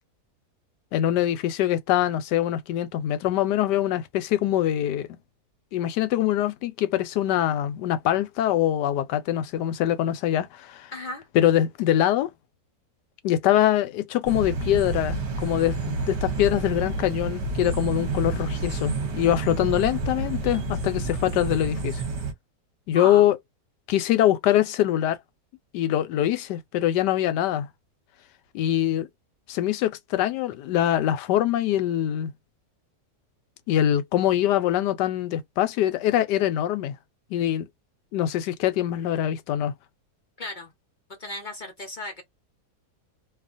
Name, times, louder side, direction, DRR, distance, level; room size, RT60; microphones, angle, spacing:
voice 1, 0.9-5.2 5.7-10.9 11.3-12.3 13.2-22.0 22.9-23.4 23.9-25.2 25.7-27.7 28.5-29.1 29.5-32.3 33.7-37.0 37.3-37.7 38.1-39.7, left 12 dB, 90° left, 1.2 m, -23 dB
voice 2, 10.9-11.3 22.9-23.2 40.4-40.7 41.1-42.2, left 2 dB, 45° left, 0.6 m, -35 dB
sound 1, 14.3-22.3, right 3 dB, 50° right, 1.0 m, -29 dB
2.6 x 2.4 x 2.4 m
omnidirectional pair, 1.8 m